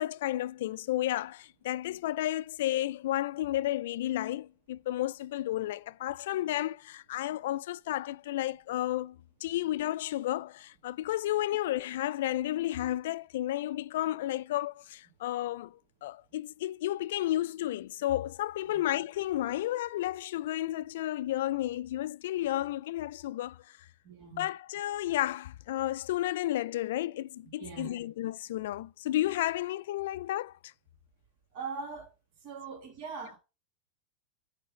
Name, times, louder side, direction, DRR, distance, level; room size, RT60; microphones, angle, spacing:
voice 1, 0.0-23.9 24.4-30.7, left 14 dB, 65° left, 0.3 m, -32 dB
voice 2, 24.0-24.5 27.6-28.1 31.5-32.1 32.4-33.4, right 5 dB, 40° right, 1.5 m, -41 dB
8.7 x 3.3 x 4.9 m
supercardioid pair, 160°, 0 cm